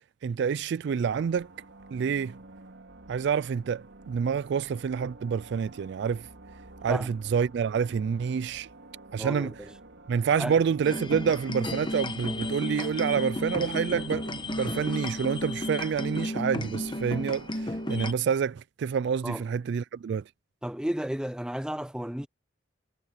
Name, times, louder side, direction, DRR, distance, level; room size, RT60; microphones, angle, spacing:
voice 1, 0.2-1.5 1.9-2.4 3.1-6.3 6.8-8.7 9.1-9.5 10.1-20.2, right 7 dB, 60° right, 0.3 m, -28 dB
sound 1, 1.0-18.2, right 2 dB, 80° right, 3.7 m, -50 dB
voice 2, 9.2-9.5 10.4-10.6 19.2-19.4 20.6-22.3, equal, 5° right, 0.5 m, -33 dB
sound 2, 10.8-18.1, left 1 dB, 25° left, 1.1 m, -33 dB
head